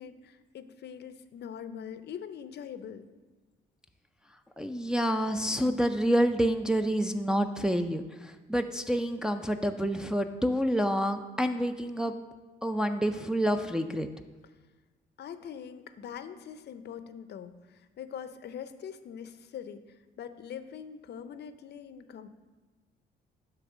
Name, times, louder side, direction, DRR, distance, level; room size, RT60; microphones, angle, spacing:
voice 1, 0.0-3.1 14.4-14.5 15.2-19.8 20.2-22.3, left 8 dB, 55° left, 11 dB, 0.5 m, -43 dB
voice 2, 4.6-12.1 12.6-14.1, equal, 5° right, 5 dB, 0.4 m, -28 dB
7.9 x 3.4 x 6.1 m, 1.3 s
cardioid pair, 90°, 20 cm